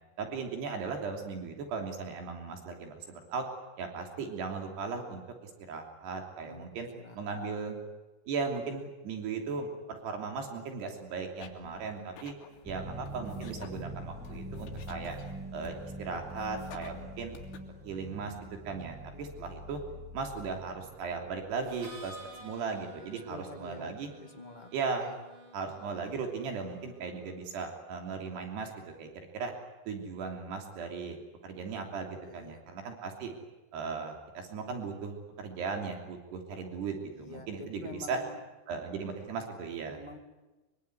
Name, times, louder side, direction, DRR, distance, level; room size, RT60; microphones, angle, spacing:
voice 1, 0.2-3.5 3.8-6.9 7.2-7.8 8.3-12.4 12.7-15.2 15.5-17.4 17.8-18.4 18.7-19.8 20.1-24.1 24.7-25.1 25.5-29.5 29.9-33.3 33.7-38.2 38.7-40.0, right 5 dB, 85° right, 3 dB, 5.2 m, -37 dB
voice 2, 6.4-7.6 23.3-24.7 24.9-25.1 32.2-32.6 37.1-38.4 39.9-40.2, left 2 dB, 20° left, 4 dB, 1.4 m, -47 dB
sound 1, 11.4-17.6, left 7 dB, 85° left, 4.5 m, -53 dB
sound 2, 12.6-22.3, right 1 dB, 5° right, 1.0 m, -44 dB
Harmonica, 21.6-27.4, equal, 50° right, 5.5 m, -52 dB
24.0 x 24.0 x 9.7 m, 1.1 s
omnidirectional pair, 4.7 m